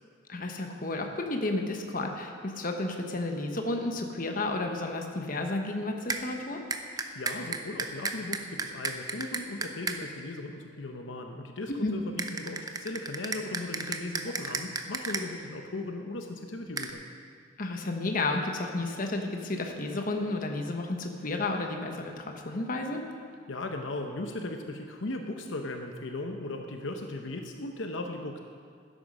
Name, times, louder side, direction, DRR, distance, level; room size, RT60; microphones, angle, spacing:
voice 1, 0.3-6.6 11.8-11.9 17.6-23.0, left 2 dB, 45° left, 3 dB, 1.1 m, -32 dB
sound 1, 6.1-6.2 6.7-10.0 12.2-15.2 16.8-16.9, right 4 dB, 20° right, 0.6 m, -33 dB
voice 2, 7.1-17.0 23.5-28.4, left 2 dB, 75° left, 4 dB, 0.8 m, -37 dB
12.5 x 10.0 x 5.4 m, 2.1 s
head